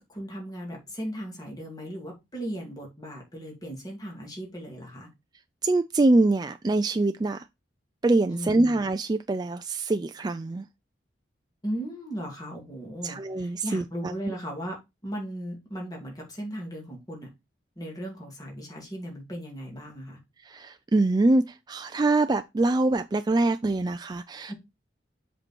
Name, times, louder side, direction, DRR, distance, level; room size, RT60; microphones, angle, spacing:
voice 1, 0.0-5.1 8.3-8.7 11.6-14.8 15.0-17.3 17.8-20.2 24.5-24.6, equal, 20° left, 2.9 m, -37 dB
voice 2, 5.6-7.4 8.0-10.6 13.0-14.3 20.4-24.5, right 2 dB, 25° right, 0.4 m, -24 dB
7.6 x 4.5 x 4.5 m
head